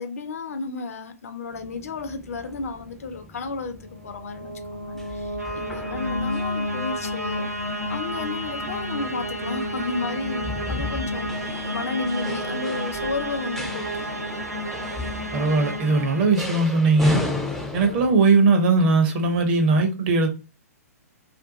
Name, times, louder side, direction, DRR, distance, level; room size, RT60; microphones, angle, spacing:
voice 1, 0.0-7.5 7.9-14.2, left 4 dB, 65° left, 0.5 m, -32 dB
sound 1, 1.5-18.1, left 2 dB, ahead, 0.4 m, -36 dB
sound 2, 3.9-17.0, equal, 90° right, 0.5 m, -31 dB
voice 2, 15.3-17.2 17.7-20.3, right 3 dB, 40° right, 0.7 m, -19 dB
2.5 x 2.2 x 3.7 m
figure-of-eight pair, 115°, 9 cm